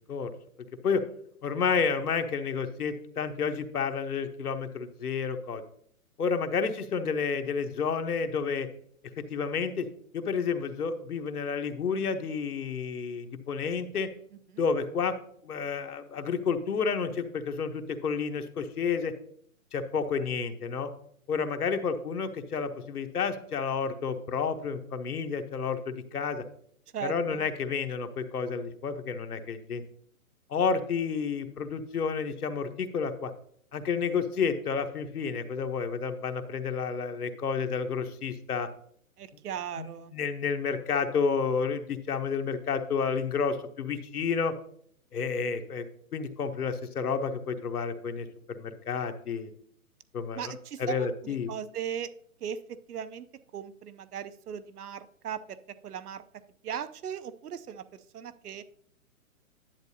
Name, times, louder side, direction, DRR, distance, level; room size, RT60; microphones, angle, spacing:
voice 1, 1.4-5.6 6.2-8.7 9.3-9.9 10.1-14.1 14.6-15.2 15.4-19.1 19.7-20.9 21.3-26.4 27.0-29.8 30.5-33.3 33.7-38.7 39.8-44.5 45.1-45.8 46.1-49.5 50.1-50.5 50.8-51.5, left 5 dB, 85° left, 7 dB, 1.1 m, -30 dB
voice 2, 26.9-27.5 39.2-40.1 50.4-52.1 52.4-52.6 52.9-53.2 53.5-55.6 55.8-56.2 56.6-57.8 58.1-58.6, right 8 dB, 85° right, 13 dB, 0.8 m, -38 dB
10.5 x 8.2 x 2.8 m, 0.63 s
hypercardioid pair, 175°, 44 cm